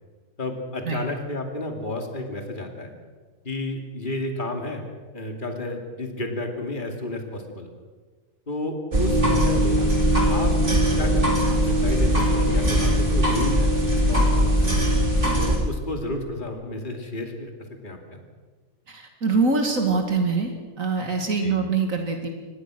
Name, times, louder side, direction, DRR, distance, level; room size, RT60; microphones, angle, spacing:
voice 1, 0.4-2.9 3.4-4.8 5.1-7.7 8.5-10.0 10.3-14.5 14.8-14.9 15.3-17.5 17.8-18.2 21.4-21.6, left 1 dB, 40° left, 3 dB, 2.7 m, -32 dB
sound 1, 8.9-15.6, equal, 40° right, 3.8 m, -20 dB
voice 2, 18.9-20.5 20.8-22.3, right 4 dB, 85° right, 4 dB, 2.7 m, -24 dB
24.5 x 20.0 x 6.3 m, 1.4 s
omnidirectional pair, 1.4 m